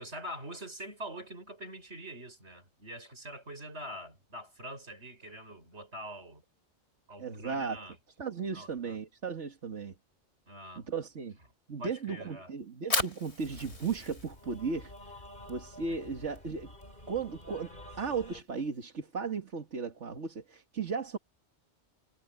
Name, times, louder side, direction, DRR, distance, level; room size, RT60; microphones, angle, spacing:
voice 1, 0.0-6.4 7.1-8.0 8.5-9.0 10.5-10.9 11.8-12.5 15.9-16.0, equal, 70° right, 7.2 m, -44 dB
voice 2, 7.2-7.8 8.2-9.9 10.8-11.4 11.7-14.9 15.5-16.7 17.1-21.2, right 5 dB, 85° right, 2.2 m, -36 dB
Fire, 12.6-18.8, left 2 dB, 65° left, 4.0 m, -39 dB
sound 1, 13.4-18.4, left 1 dB, 45° left, 3.9 m, -50 dB
omnidirectional pair, 1.2 m